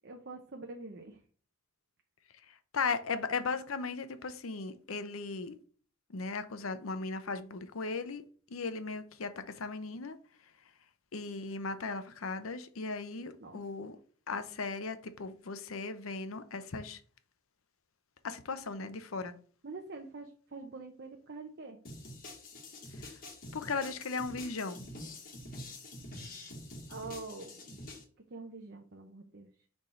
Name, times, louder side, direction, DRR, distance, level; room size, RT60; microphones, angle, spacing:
voice 1, 0.0-1.2 13.4-13.6 19.6-21.8 26.9-27.8 28.3-29.5, right 3 dB, 55° right, 0.8 m, -45 dB
voice 2, 2.7-5.5 6.1-8.2 8.5-10.2 11.1-14.0 14.3-17.0 18.2-19.4 23.0-23.1 23.5-24.9, left 4 dB, 85° left, 0.7 m, -37 dB
sound 1, 21.8-28.0, left 1 dB, 45° left, 1.6 m, -46 dB
6.4 x 3.5 x 4.3 m
head